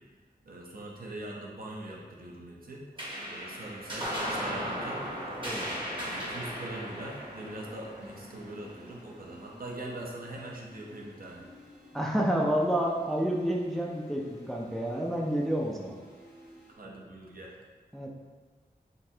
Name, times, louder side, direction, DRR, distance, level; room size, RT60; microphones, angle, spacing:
voice 1, 0.4-2.8 3.2-5.0 6.0-11.4 16.8-17.5, right 1 dB, 60° right, -3 dB, 0.7 m, -42 dB
sound 1, 3.0-9.8, equal, 30° right, 0.9 m, -37 dB
sound 2, 3.1-16.7, equal, 70° left, 1.1 m, -54 dB
voice 2, 5.4-5.8 11.9-16.0 17.9-18.1, equal, ahead, -1 dB, 0.4 m, -29 dB
3.9 x 2.6 x 2.7 m, 1.4 s
wide cardioid pair, 65°, 17 cm